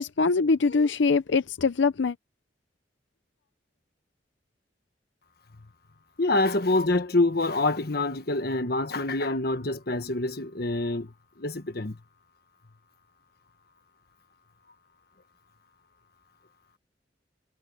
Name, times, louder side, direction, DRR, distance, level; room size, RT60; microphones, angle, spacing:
voice 1, 0.0-2.1, left 4 dB, 90° left, 0.6 m, -23 dB
voice 2, 6.2-11.1 11.4-12.0, left 2 dB, 55° left, 1.4 m, -26 dB
head